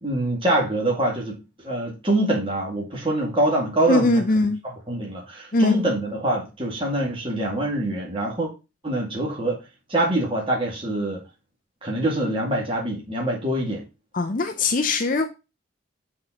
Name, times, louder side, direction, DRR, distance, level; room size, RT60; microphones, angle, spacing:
voice 1, 0.0-4.2 4.6-8.5 8.8-9.6 9.9-11.2 11.8-13.8, right 1 dB, 25° right, 2.2 m, -24 dB
voice 2, 3.9-4.6 5.5-5.8 14.1-15.3, left 2 dB, 45° left, 0.6 m, -20 dB
7.5 x 4.4 x 3.9 m
head